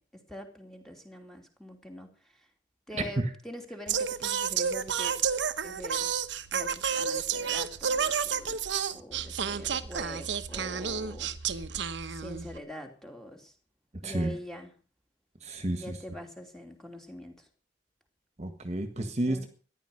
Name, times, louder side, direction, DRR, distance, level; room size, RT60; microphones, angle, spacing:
voice 1, 0.3-2.5 2.9-5.2 5.6-6.1 6.5-11.3 12.1-13.5 14.0-14.7 15.7-17.5 19.0-19.5, left 1 dB, ahead, 3 dB, 2.7 m, -44 dB
Singing, 3.9-12.6, right 7 dB, 75° right, 1.0 m, -31 dB
voice 2, 15.4-16.0 18.4-19.5, right 1 dB, 35° right, 8 dB, 1.7 m, -31 dB
14.5 x 11.0 x 6.5 m, 0.39 s
head